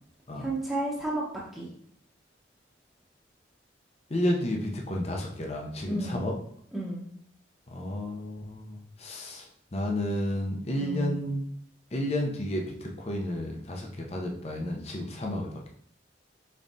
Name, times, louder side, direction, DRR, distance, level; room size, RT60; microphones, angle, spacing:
voice 1, 0.4-1.2 1.5-1.7 5.9-6.3 6.7-7.1 10.8-11.2, right 1 dB, ahead, -7 dB, 0.9 m, -32 dB
voice 2, 4.1-6.3 7.7-11.4 11.9-15.7, left 1 dB, 35° left, 0 dB, 0.6 m, -31 dB
5.4 x 3.7 x 2.7 m, 0.64 s
head